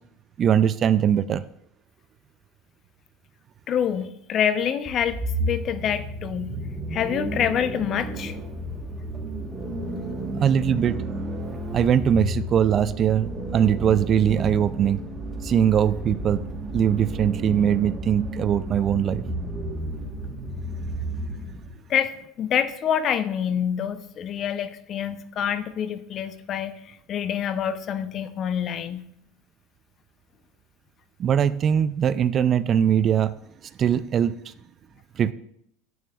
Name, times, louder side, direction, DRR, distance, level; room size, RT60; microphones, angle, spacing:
voice 1, 0.4-1.4 10.4-11.0 11.7-15.0 15.4-16.4 16.7-19.2 31.2-33.3 33.8-34.3 35.2-35.3, right 9 dB, 40° right, 16 dB, 0.3 m, -21 dB
voice 2, 3.7-6.6 6.9-8.4 21.9-22.1 22.4-29.1, left 8 dB, 45° left, 12 dB, 0.6 m, -26 dB
sound 1, 4.9-21.7, right 1 dB, 20° right, 1.3 m, -32 dB
9.2 x 8.6 x 2.4 m, 0.74 s
hypercardioid pair, 95°, 0 cm